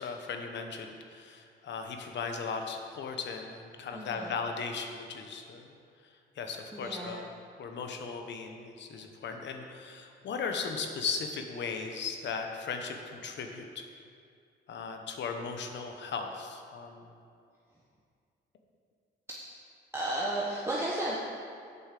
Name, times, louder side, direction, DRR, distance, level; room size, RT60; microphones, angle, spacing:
voice 1, 0.0-7.3 7.6-13.8 14.7-17.1, left 5 dB, 65° left, 4 dB, 1.1 m, -37 dB
voice 2, 3.9-4.3 6.7-7.2 19.9-21.2, right 1 dB, 10° right, -5 dB, 1.2 m, -33 dB
8.0 x 5.6 x 7.5 m, 2.3 s
cardioid pair, 90°, 20 cm